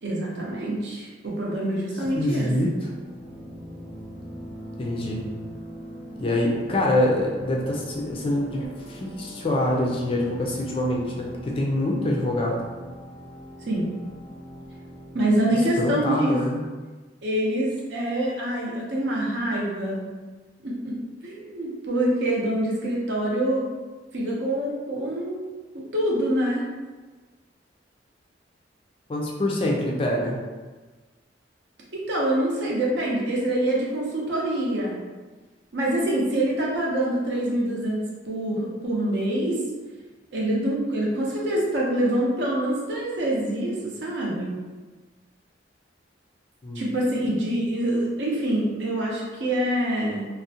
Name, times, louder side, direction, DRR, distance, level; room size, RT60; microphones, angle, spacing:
voice 1, 0.0-2.5 13.7-13.9 15.1-16.4 17.2-20.1 20.6-20.9 21.2-23.6 24.1-25.4 25.7-26.6 31.9-35.0 35.7-39.6 40.3-44.6 46.7-50.2, right 1 dB, 65° right, -4 dB, 0.6 m, -25 dB
voice 2, 2.1-2.9 4.8-5.2 6.2-12.6 15.8-16.6 29.1-30.4 46.6-46.8, left 1 dB, 30° left, -1 dB, 0.3 m, -25 dB
sound 1, 2.8-15.8, equal, 25° right, 0.7 m, -41 dB
2.4 x 2.0 x 2.7 m, 1.3 s
head